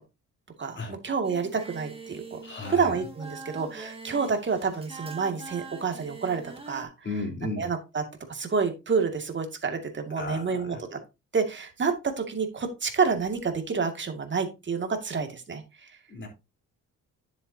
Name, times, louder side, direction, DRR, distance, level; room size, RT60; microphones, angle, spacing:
voice 1, 0.6-2.4 2.7-6.9 7.6-8.0 8.3-11.0 11.3-15.9, right 5 dB, 35° right, 2.2 m, -28 dB
Singing, 1.2-6.8, right 4 dB, 15° right, 2.0 m, -43 dB
voice 2, 2.4-2.9 7.0-7.7 10.2-10.8 16.1-16.3, left 3 dB, 35° left, 3.9 m, -34 dB
10.5 x 7.5 x 2.8 m
cardioid pair, 95°, 32 cm